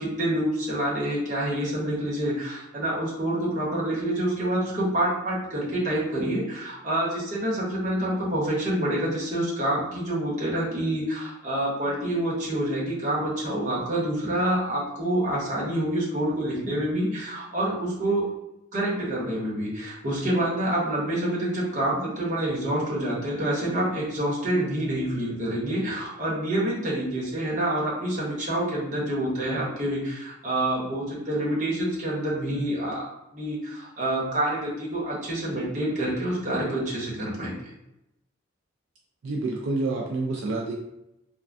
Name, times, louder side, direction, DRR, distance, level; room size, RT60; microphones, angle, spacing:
voice 1, 0.0-18.3 18.7-33.1 33.3-37.7, right 1 dB, 40° right, -5 dB, 0.9 m, -27 dB
voice 2, 39.2-40.7, right 3 dB, 75° right, -2 dB, 0.4 m, -28 dB
3.3 x 2.2 x 2.5 m, 0.88 s
head